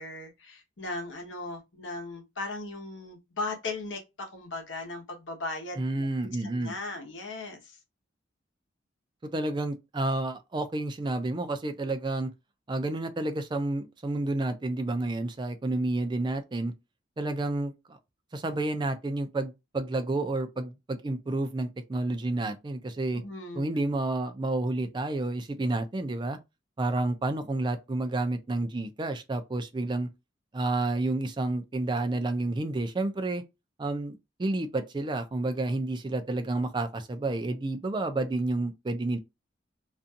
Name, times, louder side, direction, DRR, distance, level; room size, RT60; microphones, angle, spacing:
voice 1, 0.0-6.1 6.4-7.8 23.1-23.7, left 2 dB, 75° left, 0.9 m, -37 dB
voice 2, 5.8-6.7 9.2-12.3 12.7-16.7 17.2-18.0 18.3-23.2 23.5-26.4 26.8-30.1 30.5-33.4 33.8-39.2, right 2 dB, 25° right, 0.4 m, -30 dB
2.5 x 2.3 x 2.6 m
head